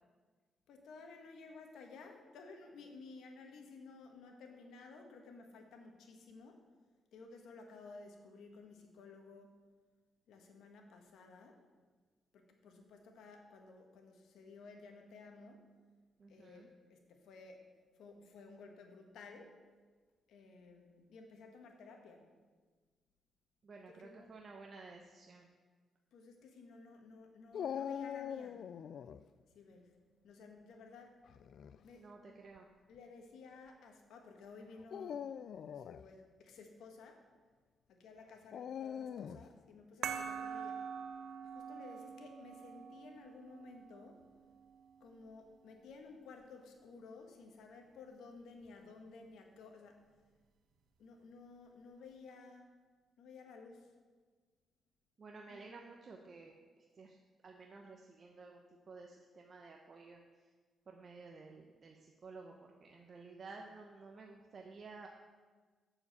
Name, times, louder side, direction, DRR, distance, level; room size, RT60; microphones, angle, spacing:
voice 1, 0.7-6.6 7.1-9.6 10.3-11.6 12.3-15.7 16.3-17.6 18.0-19.6 20.3-22.3 23.9-24.3 26.1-28.7 29.5-31.1 31.8-32.3 32.9-35.3 35.7-37.2 37.9-40.8 41.4-44.2 45.0-50.0 51.0-52.7 53.2-53.9 55.5-55.7, left 4 dB, 85° left, 3 dB, 1.4 m, -55 dB
voice 2, 16.2-16.7 23.6-25.5 32.0-32.7 55.2-57.2 57.4-60.5 60.9-65.1, right 4 dB, 45° right, 1 dB, 0.9 m, -53 dB
Dog, 27.5-29.2 31.3-31.8 32.6-32.7 34.8-36.0 38.5-39.5, left 8 dB, 70° left, 0.3 m, -42 dB
sound 1, 40.0-45.1, right 7 dB, 75° right, 0.6 m, -45 dB
7.1 x 6.9 x 6.9 m, 1.4 s
cardioid pair, 95°, 0 cm